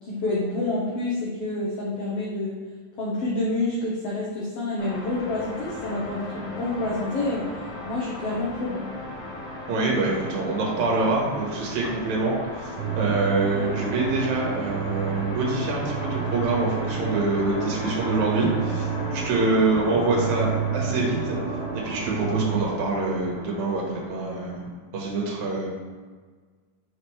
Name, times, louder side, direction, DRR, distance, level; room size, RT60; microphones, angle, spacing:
voice 1, 0.0-2.6 3.0-7.5 7.8-8.9, left 2 dB, 80° left, -5 dB, 1.4 m, -28 dB
sound 1, 4.8-24.7, left 2 dB, 50° left, 1.4 m, -36 dB
voice 2, 9.7-12.7 13.0-21.4 21.7-25.7, right 3 dB, 60° right, -3 dB, 2.5 m, -25 dB
sound 2, 12.8-22.6, right 9 dB, 85° right, 2.3 m, -30 dB
5.9 x 5.3 x 3.3 m, 1.5 s
omnidirectional pair, 4.0 m